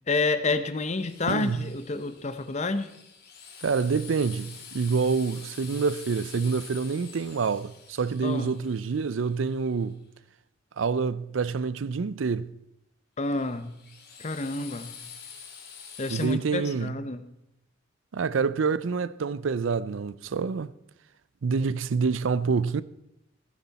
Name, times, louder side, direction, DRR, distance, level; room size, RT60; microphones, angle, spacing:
voice 1, 0.1-2.9 8.2-8.6 13.2-13.7 14.2-15.0 16.0-17.2, left 3 dB, 35° left, 0.8 m, -29 dB
Drill, 0.9-9.8 13.2-16.2, left 6 dB, 55° left, 2.4 m, -47 dB
voice 2, 1.3-1.6 3.6-10.0 10.8-12.5 16.1-16.9 18.1-20.7 21.4-22.8, right 5 dB, 80° right, 0.5 m, -27 dB
16.0 x 10.0 x 4.2 m
head